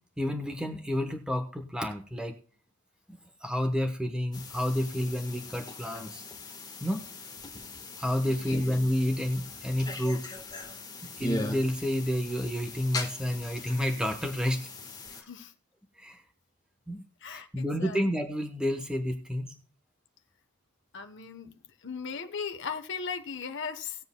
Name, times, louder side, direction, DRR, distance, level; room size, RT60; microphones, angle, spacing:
voice 1, 0.2-2.3 3.4-6.2 6.8-7.0 8.0-10.2 11.0-14.7 16.0-16.2 16.9-17.0 17.3-19.5, equal, 5° right, 5 dB, 1.0 m, -30 dB
sound 1, 4.3-15.2, left 2 dB, 20° left, 1.4 m, -40 dB
voice 2, 8.2-8.6 15.1-15.5 17.2-18.0 20.9-21.5 21.8-24.0, left 5 dB, 55° left, 7 dB, 1.0 m, -38 dB
19.0 x 7.8 x 2.3 m, 0.43 s
head